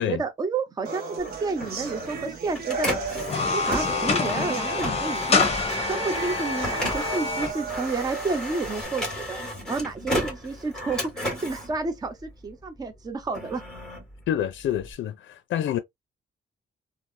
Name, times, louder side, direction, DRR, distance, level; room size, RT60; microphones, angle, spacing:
voice 1, 0.0-2.9 3.5-5.4 5.9-9.4 9.7-13.6, right 4 dB, 20° right, 0.5 m, -30 dB
sound 1, 0.9-8.8, right 4 dB, 55° right, 0.8 m, -36 dB
Printer, 1.2-12.6 13.1-14.9, equal, 5° left, 1.5 m, -34 dB
sound 2, 3.2-7.5, left 4 dB, 35° left, 0.7 m, -26 dB
voice 2, 14.3-15.8, left 10 dB, 90° left, 0.4 m, -27 dB
3.2 x 2.0 x 2.6 m
wide cardioid pair, 180°, 19 cm